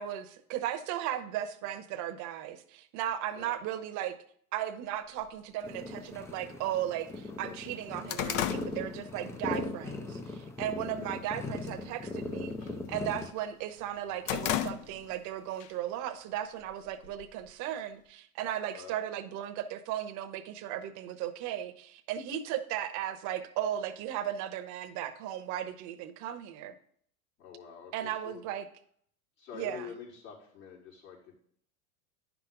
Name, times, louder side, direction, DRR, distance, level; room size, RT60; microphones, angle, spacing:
voice 1, 0.0-4.2 4.5-26.7 27.9-28.7 29.5-29.9, right 11 dB, 40° right, 11 dB, 0.9 m, -36 dB
sound 1, 5.2-5.3 6.2-6.3 6.8-6.9 7.2-9.6 10.0-10.3 10.8-11.3 11.5-11.9 12.2-13.4 13.8-15.3 15.6-15.7 16.6-17.5, left 11 dB, 60° left, 0.7 m, -35 dB
sound 2, 5.6-13.3, left 2 dB, 5° left, 0.3 m, -39 dB
voice 2, 27.4-28.4 29.4-31.3, left 7 dB, 75° left, -8 dB, 4.1 m, -47 dB
9.5 x 6.0 x 3.8 m, 0.63 s
hypercardioid pair, 105°, 44 cm